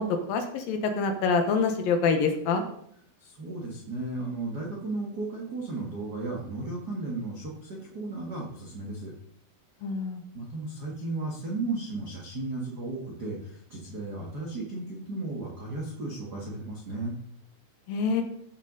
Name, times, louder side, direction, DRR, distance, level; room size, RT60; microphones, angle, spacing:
voice 1, 0.0-2.6 9.8-10.2 17.9-18.2, left 4 dB, 70° left, 5 dB, 2.5 m, -26 dB
voice 2, 3.2-9.1 10.3-17.1, right 2 dB, 70° right, -3 dB, 0.9 m, -35 dB
14.5 x 6.3 x 3.9 m, 0.68 s
omnidirectional pair, 4.7 m